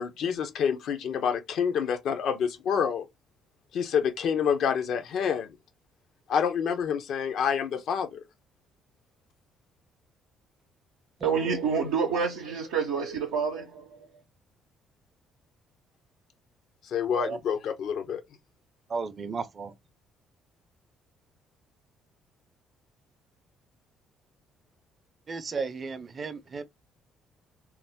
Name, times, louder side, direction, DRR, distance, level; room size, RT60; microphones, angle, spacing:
voice 1, 0.0-3.0 3.7-5.5 6.3-8.2 16.8-18.2, left 7 dB, 65° left, 0.6 m, -27 dB
voice 2, 11.2-14.1, right 6 dB, 85° right, 0.6 m, -28 dB
voice 3, 18.9-19.7 25.3-26.6, right 4 dB, 45° right, 0.6 m, -34 dB
3.0 x 2.0 x 3.5 m
hypercardioid pair, 55°, 0 cm